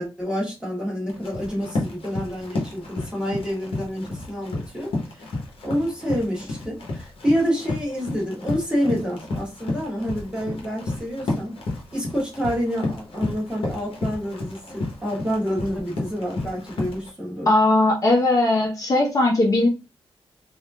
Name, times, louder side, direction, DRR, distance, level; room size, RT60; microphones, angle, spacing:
voice 1, 0.0-5.3 5.6-11.6 11.9-17.5, equal, 10° right, -4 dB, 1.4 m, -28 dB
Run, 1.1-17.1, left 2 dB, 70° left, 1.0 m, -32 dB
voice 2, 17.5-19.7, left 2 dB, 35° left, -2 dB, 1.0 m, -19 dB
3.5 x 2.7 x 2.4 m, 0.28 s
wide cardioid pair, 120°, 10 cm